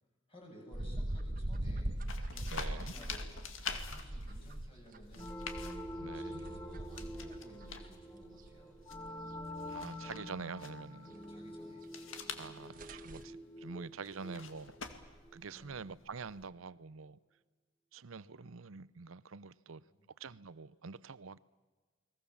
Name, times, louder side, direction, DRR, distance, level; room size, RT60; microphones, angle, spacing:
voice 1, 0.3-2.0 2.3-3.3 3.9-5.4 6.1-8.8 11.0-11.8 15.5-15.8 19.7-20.1, equal, 25° left, 7.7 m, -56 dB
sound 1, 0.7-7.9 8.2-9.1 9.4-9.5 9.9-10.0 12.0-12.1 12.4-12.5 12.7-13.2, right 1 dB, 45° right, 1.3 m, -41 dB
sound 2, 2.1-16.5, left 6 dB, 80° left, 2.2 m, -48 dB
voice 2, 2.5-2.9 6.0-6.4 9.7-11.1 12.4-14.7 15.3-17.2 17.9-19.8 20.2-21.4, right 4 dB, 90° right, 0.7 m, -46 dB
sound 3, 5.2-15.6, equal, 10° left, 1.7 m, -47 dB
30.0 x 21.0 x 7.3 m
head